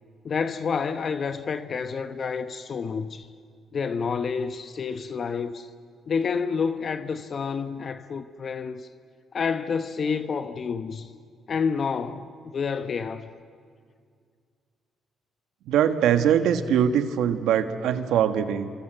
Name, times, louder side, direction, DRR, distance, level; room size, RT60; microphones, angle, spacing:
voice 1, 0.2-3.3 3.7-5.7 6.1-8.9 9.3-11.1 11.5-13.3, left 5 dB, 50° left, 1.0 m, -29 dB
voice 2, 15.7-18.7, right 9 dB, 85° right, 1.6 m, -22 dB
28.5 x 25.0 x 7.9 m
cardioid pair, 90°, 0 cm